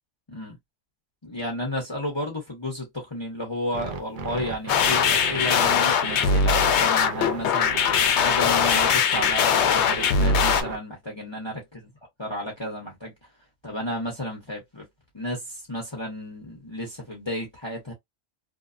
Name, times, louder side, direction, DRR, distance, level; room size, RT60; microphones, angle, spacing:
voice 1, 1.2-7.7 8.1-11.8 12.2-13.1 13.6-14.9 15.1-17.9, equal, 25° left, 0.8 m, -32 dB
sound 1, 3.7-10.8, right 4 dB, 55° right, 0.6 m, -35 dB
sound 2, 4.7-10.6, left 6 dB, 70° left, 0.8 m, -21 dB
2.8 x 2.1 x 2.5 m
omnidirectional pair, 1.2 m